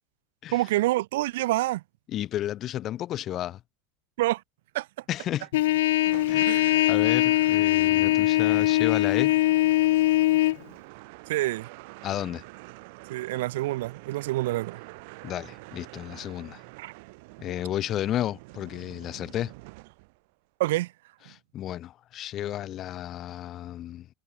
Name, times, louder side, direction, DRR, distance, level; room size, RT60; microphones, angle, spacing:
voice 1, 0.5-1.8 4.2-4.4 4.7-4.9 6.5-6.8 11.3-11.7 13.1-14.8 16.8-16.9 20.6-20.9, right 17 dB, 80° right, 0.7 m, -27 dB
voice 2, 2.1-3.6 5.1-5.5 6.3-9.3 12.0-12.4 15.2-16.6 17.4-19.5 21.3-24.1, left 12 dB, 30° left, 1.4 m, -32 dB
Trumpet, 5.5-10.6, left 16 dB, 85° left, 0.6 m, -21 dB
sound 1, 6.0-20.3, right 27 dB, 60° right, 5.7 m, -46 dB
supercardioid pair, 160°, 0 cm